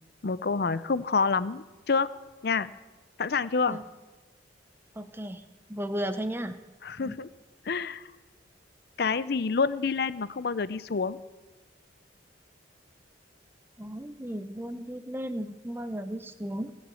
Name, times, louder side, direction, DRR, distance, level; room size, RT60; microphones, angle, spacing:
voice 1, 0.2-2.1 2.4-2.7 3.2-3.8 6.8-7.3 7.6-8.0 9.0-11.2, left 4 dB, 55° left, 16 dB, 0.5 m, -28 dB
voice 2, 5.0-6.6 7.0-7.2 13.8-16.7, equal, 10° right, 10 dB, 0.6 m, -35 dB
19.0 x 6.6 x 8.3 m, 1.2 s
head